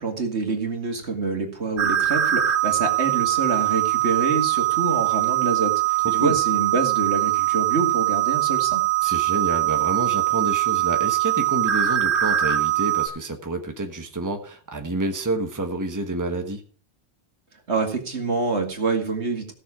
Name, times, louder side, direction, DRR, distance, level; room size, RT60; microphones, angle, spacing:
voice 1, 0.0-8.8 17.7-19.5, right 4 dB, 75° right, 3 dB, 2.5 m, -26 dB
sound 1, 1.8-13.1, right 14 dB, 55° right, 1.2 m, -22 dB
voice 2, 6.0-6.4 9.0-16.6, right 2 dB, 15° right, 4 dB, 1.3 m, -28 dB
16.5 x 6.6 x 4.9 m, 0.41 s
omnidirectional pair, 1.1 m